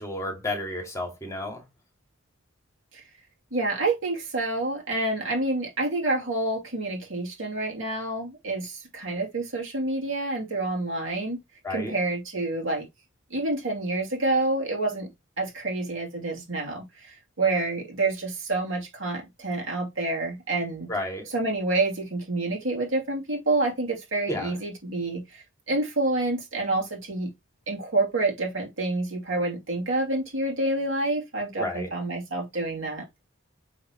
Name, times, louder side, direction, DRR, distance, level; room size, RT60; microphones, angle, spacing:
voice 1, 0.0-1.6 11.6-11.9 20.9-21.3 24.3-24.5 31.6-31.9, left 1 dB, 15° left, 2.3 m, -31 dB
voice 2, 3.5-11.4 11.7-12.9 13.3-15.1 15.4-20.9 21.3-27.3 27.7-33.0, right 2 dB, 70° right, 2.8 m, -28 dB
6.4 x 5.9 x 3.0 m
head